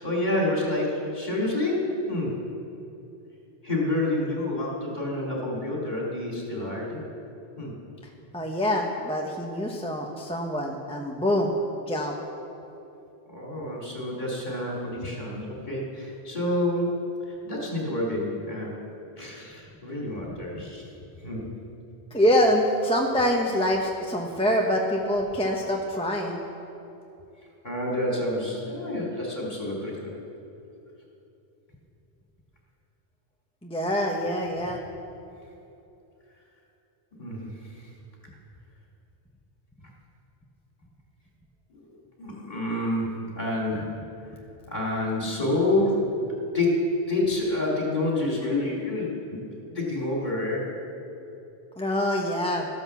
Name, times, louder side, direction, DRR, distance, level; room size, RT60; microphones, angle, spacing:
voice 1, 0.0-2.4 3.6-7.0 7.6-7.7 13.3-17.0 17.4-18.7 19.2-20.8 21.2-21.4 27.6-30.1 37.2-37.5 37.8-37.9 41.7-41.8 42.2-43.9 44.7-46.1 46.5-49.4 49.7-50.7, left 1 dB, 45° left, -4 dB, 3.4 m, -28 dB
voice 2, 8.3-11.5 11.9-12.1 20.2-20.4 22.1-26.4 33.6-34.8 51.8-52.7, equal, 5° left, 0 dB, 1.0 m, -25 dB
14.5 x 10.5 x 7.2 m, 2.9 s
omnidirectional pair, 1.1 m